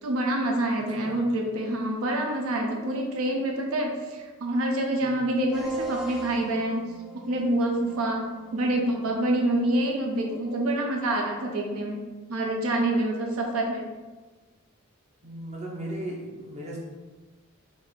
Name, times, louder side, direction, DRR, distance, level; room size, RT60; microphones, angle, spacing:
voice 1, 0.0-6.8 7.2-8.2 8.5-13.9, right 1 dB, 90° right, 1 dB, 0.5 m, -27 dB
sound 1, 5.5-10.9, right 2 dB, 5° right, 0.4 m, -40 dB
voice 2, 15.2-16.8, right 1 dB, 30° right, -3 dB, 0.8 m, -37 dB
3.6 x 2.5 x 3.9 m, 1.3 s
head